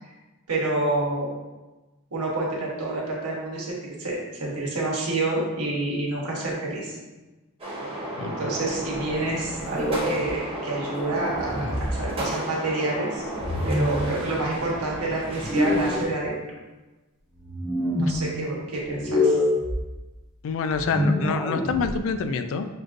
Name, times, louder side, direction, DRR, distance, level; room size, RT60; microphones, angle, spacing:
voice 1, 0.5-1.3 2.1-7.0 8.2-13.3 13.6-16.3 17.9-19.4, right 2 dB, 85° right, -3 dB, 1.0 m, -28 dB
sound 1, 7.6-16.0, right 1 dB, 25° right, 0.9 m, -33 dB
voice 2, 8.2-8.5 20.4-22.7, left 5 dB, 60° left, 9 dB, 0.3 m, -27 dB
sound 2, 9.7-10.3 11.3-12.0 13.4-14.0 15.4-16.1 17.4-18.1 18.9-19.8 20.7-21.9, left 1 dB, 5° right, 0.5 m, -25 dB
6.0 x 2.5 x 2.5 m, 1.1 s
head